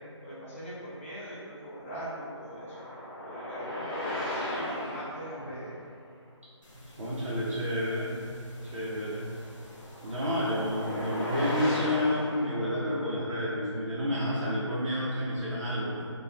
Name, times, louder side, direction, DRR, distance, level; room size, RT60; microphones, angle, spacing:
voice 1, 0.2-2.7 3.3-4.3 4.6-5.7 8.7-8.8, right 1 dB, 25° left, -11 dB, 0.5 m, -41 dB
sound 1, 1.7-5.3 9.2-13.0, left 1 dB, 45° left, 1.0 m, -36 dB
sound 2, 6.6-11.6, left 1 dB, 80° left, 0.8 m, -54 dB
voice 2, 7.0-8.1 8.7-9.3 10.0-16.0, left 1 dB, 80° right, -9 dB, 0.7 m, -30 dB
2.5 x 2.3 x 3.1 m, 2.4 s
figure-of-eight pair, 170°, 16 cm